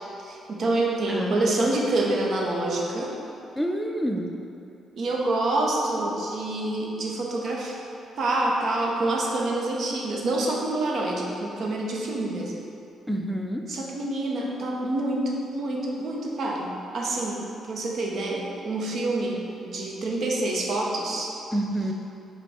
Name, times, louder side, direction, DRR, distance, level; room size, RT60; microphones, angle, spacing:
voice 1, 0.2-3.1 5.0-7.8 8.2-12.5 13.7-21.3, right 2 dB, 60° right, -2 dB, 0.7 m, -27 dB
voice 2, 1.1-1.7 3.6-4.3 13.1-13.6 21.5-21.9, right 1 dB, ahead, 2 dB, 0.4 m, -28 dB
4.9 x 2.2 x 4.8 m, 2.7 s
cardioid pair, 90°, 0 cm